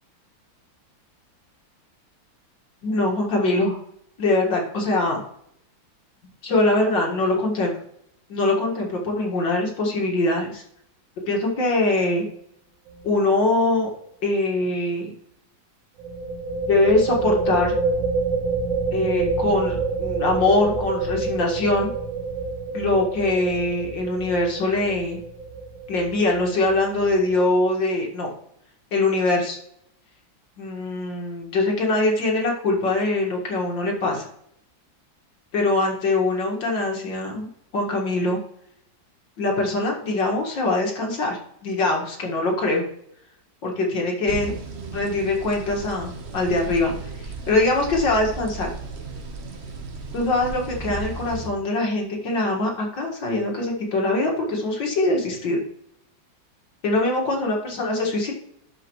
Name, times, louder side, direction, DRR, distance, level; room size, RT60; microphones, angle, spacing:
voice 1, 2.8-3.8 4.2-5.2 6.4-7.7 8.3-10.6 11.3-12.2 13.0-13.9 14.2-15.1 16.7-17.7 18.9-21.9 22.7-25.2 25.9-28.3 28.9-29.6 30.6-34.3 35.5-37.5 37.7-38.4 39.4-42.8 43.6-44.5 44.9-46.9 47.2-48.7 50.1-55.6 56.8-58.3, left 2 dB, 70° left, 0 dB, 2.5 m, -23 dB
sound 1, 12.9-13.2 13.4-13.5 16.0-27.4, right 4 dB, 80° right, 1.5 m, -28 dB
sound 2, 44.3-51.5, right 3 dB, 40° right, 1.0 m, -35 dB
12.0 x 5.2 x 3.1 m, 0.70 s
omnidirectional pair, 2.1 m